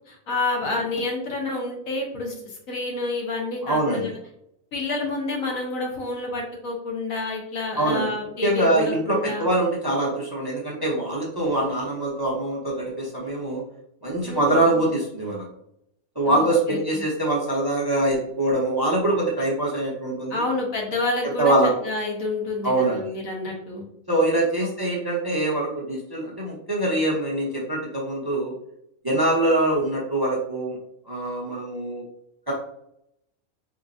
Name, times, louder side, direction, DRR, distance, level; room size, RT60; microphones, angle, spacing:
voice 1, 0.1-4.1 4.7-9.5 14.2-14.8 16.3-17.0 20.3-21.5 21.8-23.8, left 3 dB, 85° left, -1 dB, 1.4 m, -29 dB
voice 2, 3.6-4.1 7.8-8.1 8.4-13.6 14.0-15.5 16.2-20.4 21.4-21.7 22.6-23.1 24.1-28.5 29.0-30.8 31.1-32.0 32.5-32.6, right 1 dB, 30° right, -3 dB, 0.4 m, -23 dB
4.4 x 2.8 x 2.5 m, 0.76 s
omnidirectional pair, 1.4 m